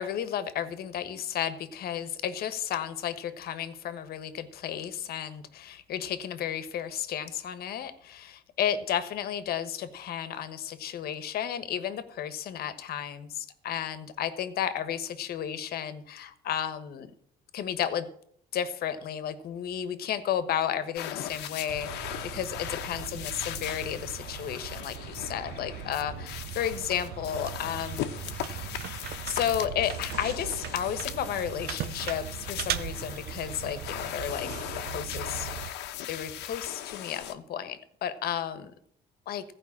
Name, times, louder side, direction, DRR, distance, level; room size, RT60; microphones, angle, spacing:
voice 1, 0.0-17.1 17.5-18.1 18.5-28.1 28.4-28.9 29.2-34.5 34.9-35.5 36.1-38.7 39.3-39.4, left 9 dB, 65° left, 12 dB, 1.3 m, -33 dB
sound 1, 21.0-37.3, left 11 dB, 90° left, 1.0 m, -39 dB
sound 2, 21.7-35.7, right 11 dB, 70° right, 0.7 m, -39 dB
15.0 x 5.3 x 8.6 m, 0.67 s
cardioid pair, 110°, 17 cm